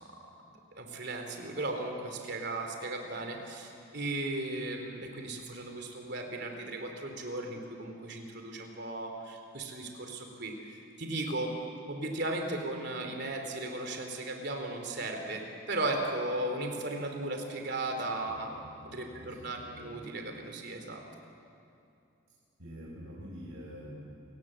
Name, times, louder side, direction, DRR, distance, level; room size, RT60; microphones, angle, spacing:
voice 1, 0.8-11.5 11.9-18.5 18.9-21.0, right 2 dB, 55° right, 4 dB, 3.2 m, -36 dB
voice 2, 18.8-19.9 22.6-24.1, equal, 85° right, -5 dB, 5.5 m, -46 dB
29.0 x 18.0 x 7.6 m, 2.6 s
head